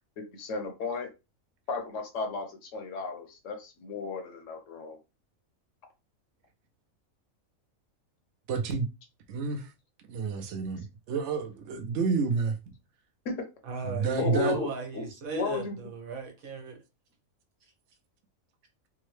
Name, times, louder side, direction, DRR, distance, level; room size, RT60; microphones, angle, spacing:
voice 1, 0.2-1.1 1.7-5.0 13.2-13.4 14.2-14.7 14.9-15.1 15.3-15.7, left 4 dB, 65° left, 1.1 m, -34 dB
voice 2, 8.5-8.9 9.3-9.7 10.1-12.6 13.9-14.6, right 5 dB, 65° right, 0.9 m, -29 dB
voice 3, 13.6-16.8, right 4 dB, 80° right, 1.4 m, -37 dB
3.6 x 2.1 x 3.1 m
omnidirectional pair, 1.4 m